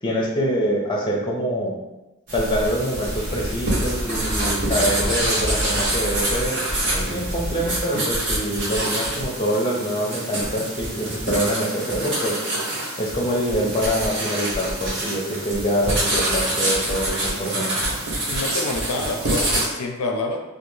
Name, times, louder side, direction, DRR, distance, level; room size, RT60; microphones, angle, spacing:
voice 1, 0.0-1.8 2.3-6.6 6.9-12.4 13.0-17.7, equal, 20° left, -2 dB, 0.6 m, -25 dB
sound 1, 2.3-19.7, right 1 dB, 50° right, 0.8 m, -26 dB
voice 2, 18.3-20.4, left 3 dB, 80° left, 3 dB, 0.4 m, -27 dB
3.3 x 2.2 x 3.1 m, 1.0 s
head